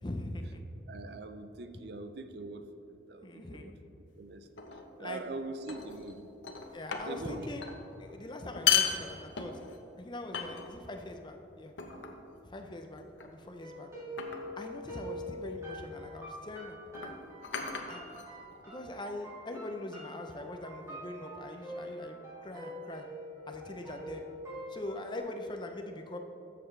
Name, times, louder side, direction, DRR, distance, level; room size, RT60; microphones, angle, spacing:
voice 1, 0.0-0.6 1.8-1.9 3.2-3.8 5.0-5.2 6.7-7.7 8.0-9.5 10.0-11.7 12.4-13.9 14.6-17.1 17.7-18.0 18.7-23.1 23.5-24.2 24.7-26.2, left 1 dB, 25° left, 5 dB, 0.6 m, -42 dB
voice 2, 0.9-4.5 5.0-6.3 7.0-7.5, right 3 dB, 60° right, 8 dB, 0.5 m, -43 dB
sound 1, 4.6-4.9 5.7-6.1 6.4-7.3 7.6-7.8 8.4-9.8 10.3-10.9 11.8-12.2 13.2-13.5 14.2-14.6 15.8-15.9 16.9-18.6, left 8 dB, 80° left, 0.9 m, -34 dB
sound 2, 13.6-25.2, equal, 15° right, 2.0 m, -45 dB
13.5 x 6.8 x 3.3 m, 2.9 s
head